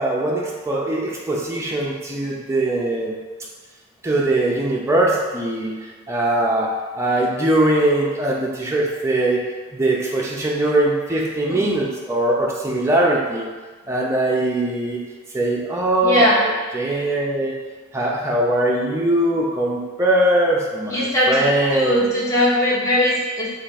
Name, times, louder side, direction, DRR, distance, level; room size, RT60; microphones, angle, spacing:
voice 1, 0.0-3.1 4.0-6.7 7.0-13.5 13.9-15.0 15.3-17.5 17.9-22.0, right 1 dB, 15° right, -3 dB, 0.4 m, -21 dB
voice 2, 16.0-16.4 20.9-21.4 21.7-23.5, equal, 15° left, -8 dB, 0.8 m, -19 dB
3.2 x 2.3 x 4.1 m, 1.4 s
head